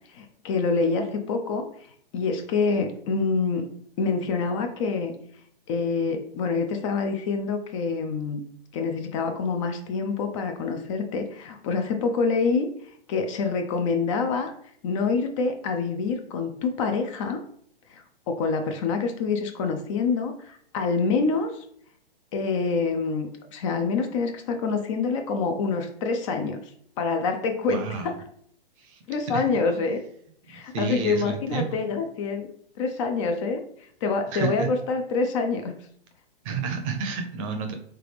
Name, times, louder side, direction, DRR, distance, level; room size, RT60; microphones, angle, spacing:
voice 1, 0.1-1.7 2.1-3.7 4.0-5.1 5.7-8.4 8.7-14.5 14.8-17.4 17.9-21.7 22.3-26.7 27.0-28.1 29.1-30.0 30.5-32.5 32.8-35.8, left 4 dB, 35° left, 6 dB, 0.4 m, -26 dB
voice 2, 27.7-28.1 28.8-29.0 29.3-29.4 30.7-31.8 34.3-34.7 36.4-37.7, right 5 dB, 35° right, 5 dB, 0.7 m, -30 dB
3.8 x 3.3 x 3.4 m, 0.65 s
hypercardioid pair, 120°, 30 cm